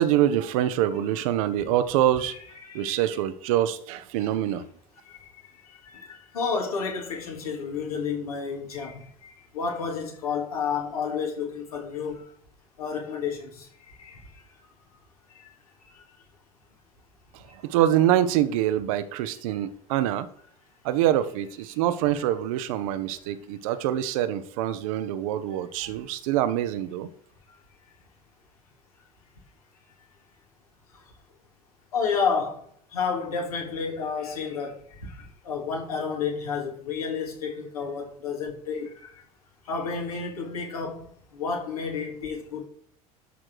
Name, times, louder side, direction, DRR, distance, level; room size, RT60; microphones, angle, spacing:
voice 1, 0.0-2.3 2.7-4.6 17.3-20.3 20.8-27.1, right 12 dB, 65° right, 1.0 m, -25 dB
voice 2, 2.2-3.0 5.0-5.3 5.6-12.3 12.8-13.7 14.0-14.2 15.3-15.5 15.9-16.0 17.5-17.6 21.7-21.8 30.9-31.0 31.9-32.6 32.9-39.1 39.6-42.7, left 5 dB, 80° left, 2.9 m, -31 dB
12.5 x 6.1 x 4.8 m
figure-of-eight pair, 65°, 19 cm